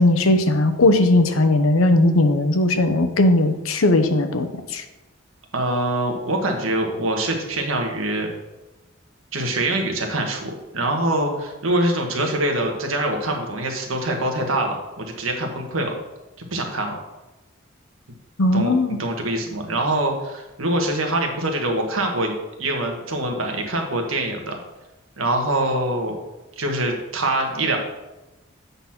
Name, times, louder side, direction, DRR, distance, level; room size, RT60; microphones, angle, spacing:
voice 1, 0.0-4.8 18.4-19.0, left 2 dB, 85° left, 7 dB, 0.8 m, -18 dB
voice 2, 5.5-8.3 9.3-15.9 16.4-16.9 18.5-18.7 19.0-22.3 22.6-24.6 25.2-26.2 26.6-27.8, right 1 dB, 85° right, 2 dB, 1.4 m, -24 dB
8.1 x 4.1 x 5.8 m, 1.0 s
head